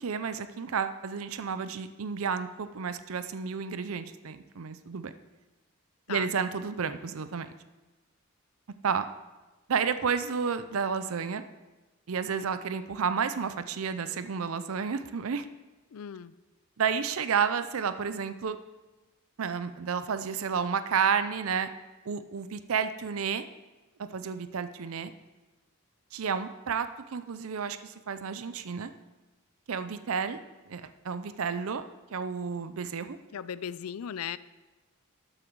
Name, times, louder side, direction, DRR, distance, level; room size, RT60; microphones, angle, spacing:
voice 1, 0.0-5.1 6.1-7.5 8.8-9.1 9.7-11.4 12.1-15.5 16.8-18.6 19.4-21.7 22.1-23.5 24.0-25.1 26.1-28.9 29.7-30.4 30.7-31.8 32.1-33.2, right 6 dB, 75° right, 11 dB, 0.5 m, -31 dB
voice 2, 15.9-16.3 33.3-34.4, left 8 dB, 85° left, 17 dB, 0.4 m, -37 dB
12.5 x 8.8 x 4.6 m, 1.1 s
head